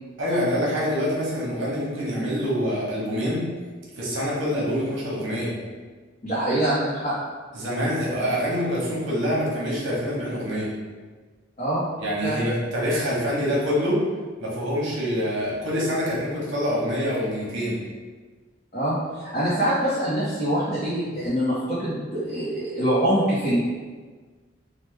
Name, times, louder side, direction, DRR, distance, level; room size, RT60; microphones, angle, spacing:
voice 1, 0.2-3.4 4.0-5.5 7.5-10.7 12.0-14.0 14.4-17.8, equal, 70° right, -5 dB, 0.9 m, -25 dB
voice 2, 6.2-7.1 11.6-11.9 12.2-12.4 18.7-23.6, right 1 dB, 40° left, -9 dB, 0.6 m, -24 dB
3.2 x 2.1 x 3.2 m, 1.4 s
head